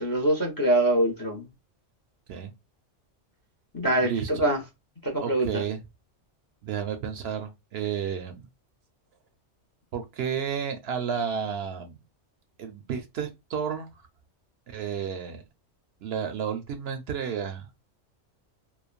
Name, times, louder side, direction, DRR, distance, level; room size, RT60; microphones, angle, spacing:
voice 1, 0.0-1.5 3.7-4.6 5.0-5.6, right 1 dB, 25° left, 0.5 m, -24 dB
voice 2, 5.2-5.8 6.6-8.5 9.9-12.0 12.6-13.9 14.7-15.4 16.0-17.7, right 7 dB, 65° right, 0.7 m, -31 dB
3.1 x 2.1 x 2.3 m
omnidirectional pair, 1.2 m